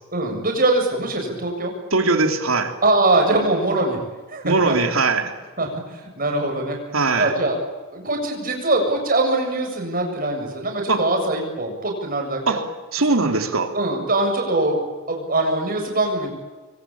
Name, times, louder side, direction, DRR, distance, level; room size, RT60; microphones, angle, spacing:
voice 1, 0.1-1.7 2.8-4.0 4.3-4.8 5.6-6.8 7.2-7.6 7.9-12.6 13.7-16.3, right 2 dB, 40° right, 2 dB, 7.2 m, -22 dB
voice 2, 1.9-2.8 4.4-5.3 6.9-7.3 10.9-11.1 12.5-12.7 12.9-13.7, right 3 dB, 80° right, 6 dB, 3.3 m, -20 dB
27.0 x 23.5 x 8.7 m, 1.3 s
head